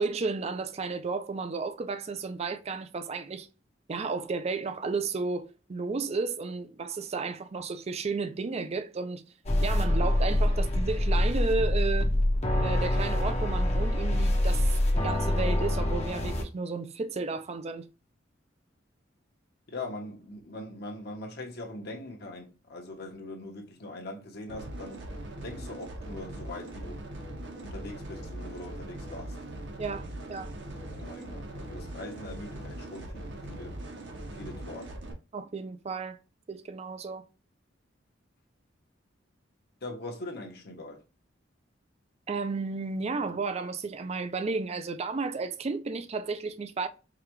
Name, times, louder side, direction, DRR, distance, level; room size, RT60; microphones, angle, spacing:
voice 1, 0.0-3.5 3.9-9.2 9.6-12.1 12.6-14.7 14.9-17.9 29.8-30.0 30.3-30.5 35.3-36.2 36.5-37.3 42.3-46.9, right 4 dB, 35° right, 0.4 m, -33 dB
sound 1, 9.5-16.4, left 1 dB, 35° left, 0.7 m, -25 dB
voice 2, 19.7-25.0 25.4-27.0 27.6-29.4 30.8-33.8 34.3-35.0 39.8-41.0, left 2 dB, 60° left, 1.0 m, -42 dB
sound 2, 24.5-35.1, right 1 dB, 65° right, 0.9 m, -40 dB
4.8 x 2.3 x 3.0 m
head